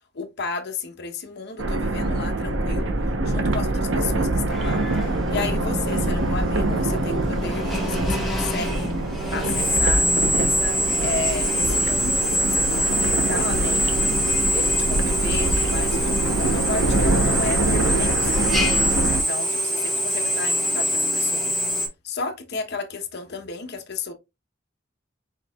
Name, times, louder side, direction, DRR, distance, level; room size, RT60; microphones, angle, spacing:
voice 1, 0.1-2.9 3.2-4.8 5.3-8.9 9.3-10.1 10.4-18.9 19.1-21.6 22.0-24.1, left 4 dB, 55° left, 1.0 m, -33 dB
sound 1, 1.6-19.2, right 2 dB, 75° right, 0.9 m, -24 dB
Drill, 4.5-21.9, equal, ahead, 1.5 m, -25 dB
4.8 x 4.7 x 2.4 m
head